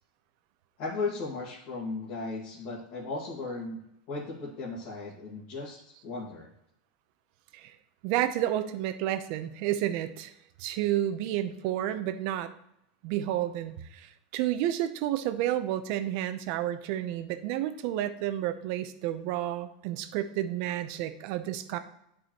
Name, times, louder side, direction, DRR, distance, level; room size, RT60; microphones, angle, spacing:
voice 1, 0.8-6.5, left 3 dB, 45° left, -7 dB, 1.9 m, -36 dB
voice 2, 8.0-10.3 10.6-12.5 13.0-21.8, right 12 dB, 50° right, 10 dB, 0.7 m, -31 dB
10.5 x 4.9 x 3.0 m, 0.78 s
supercardioid pair, 155°, 4 cm